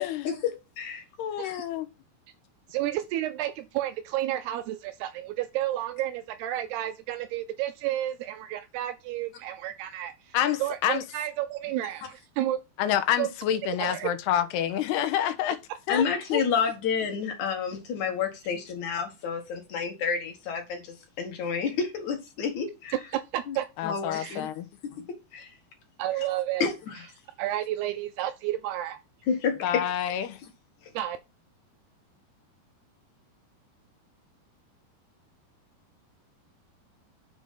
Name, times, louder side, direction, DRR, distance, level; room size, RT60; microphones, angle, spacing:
voice 1, 0.0-1.0 1.4-1.6 13.8-13.9 15.9-22.9 23.5-23.6 23.8-24.5 24.8-25.5 26.6-27.1 29.3-29.9, left 6 dB, 50° left, 3.0 m, -30 dB
voice 2, 1.2-1.9 10.3-11.0 12.8-15.6 15.9-16.0 16.3-16.4 23.8-24.7 29.6-30.4, left 10 dB, 80° left, 2.7 m, -28 dB
voice 3, 2.7-12.6 13.2-13.3 13.8-14.1 23.1-23.7 24.1-24.4 26.0-26.7 27.4-29.0 31.0-31.2, right 13 dB, 80° right, 2.6 m, -31 dB
7.0 x 4.9 x 5.4 m
omnidirectional pair, 4.8 m